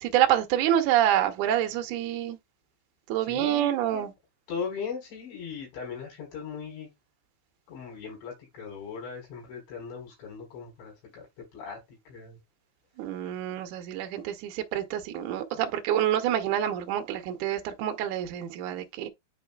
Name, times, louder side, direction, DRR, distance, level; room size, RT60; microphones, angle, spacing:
voice 1, 0.0-2.4 3.1-4.1 13.0-19.1, right 11 dB, 70° right, 1.9 m, -27 dB
voice 2, 3.2-4.0 4.5-6.9 7.7-12.4, left 6 dB, 85° left, 6.7 m, -39 dB
10.0 x 4.2 x 2.4 m
omnidirectional pair, 4.9 m